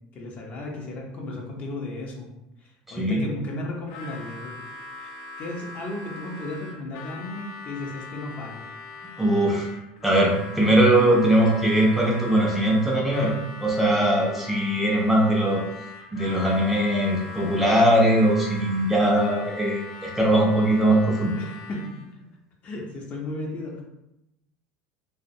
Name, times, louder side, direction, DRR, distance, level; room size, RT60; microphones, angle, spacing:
voice 1, 0.1-2.3 2.6-4.7 4.9-8.7 21.4-22.0 22.6-23.8, left 2 dB, 40° left, 0 dB, 0.7 m, -35 dB
Harmonica, 3.8-22.1, left 3 dB, 75° left, 0.5 m, -41 dB
voice 2, 9.2-9.7 10.0-13.3 13.6-15.6 16.1-21.3, right 1 dB, 5° right, -3 dB, 0.5 m, -20 dB
2.4 x 2.1 x 2.6 m, 0.88 s
supercardioid pair, 115°, 4 cm